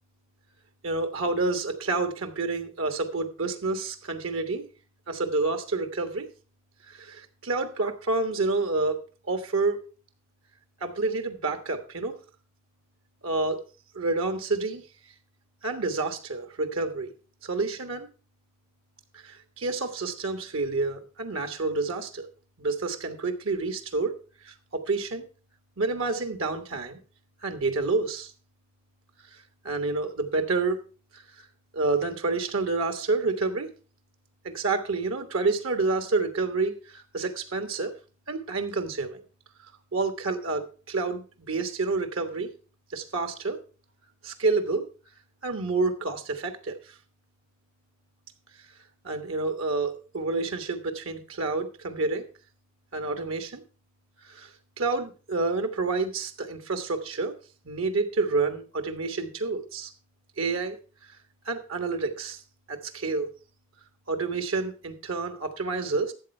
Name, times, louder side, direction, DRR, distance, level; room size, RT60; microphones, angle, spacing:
voice 1, 0.8-4.6 5.1-6.3 6.9-9.0 9.3-9.8 10.8-12.1 13.2-13.6 13.9-14.8 15.6-17.1 17.4-18.1 19.1-22.3 22.6-24.1 24.4-25.3 25.8-27.0 27.4-28.3 29.6-30.8 31.7-33.7 34.4-37.9 38.3-39.2 39.9-42.5 42.9-43.6 44.2-44.8 45.4-46.8 49.0-52.2 52.9-53.6 54.3-54.5 54.8-57.3 57.6-59.9 60.4-60.8 61.5-62.4 62.7-63.3 64.1-66.1, right 3 dB, 85° right, 7 dB, 1.4 m, -28 dB
12.5 x 7.9 x 4.4 m, 0.36 s
head